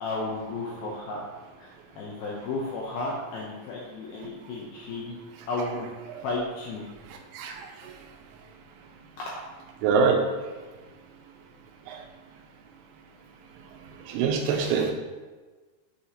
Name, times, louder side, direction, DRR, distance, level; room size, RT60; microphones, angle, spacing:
voice 1, 0.0-1.2 1.6-5.2 5.5-5.9 6.2-6.8 9.2-9.3, left 2 dB, 85° left, -3 dB, 2.2 m, -33 dB
voice 2, 7.3-7.9 9.8-10.2 11.9-12.0 14.1-14.9, right 5 dB, 85° right, 3 dB, 3.1 m, -25 dB
7.5 x 5.8 x 2.8 m, 1.3 s
omnidirectional pair, 5.2 m